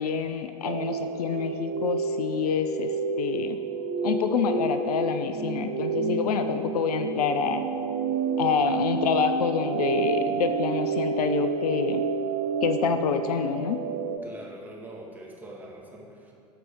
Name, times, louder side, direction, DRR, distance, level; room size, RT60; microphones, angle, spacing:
voice 1, 0.0-3.6 4.0-7.6 8.4-12.0 12.6-13.9, left 7 dB, 70° left, 9 dB, 0.5 m, -27 dB
sound 1, 0.6-14.2, right 6 dB, 45° right, 0.7 m, -29 dB
voice 2, 14.2-16.3, right 1 dB, 10° right, -3 dB, 1.9 m, -43 dB
13.0 x 4.6 x 5.2 m, 2.4 s
figure-of-eight pair, 75°, 21 cm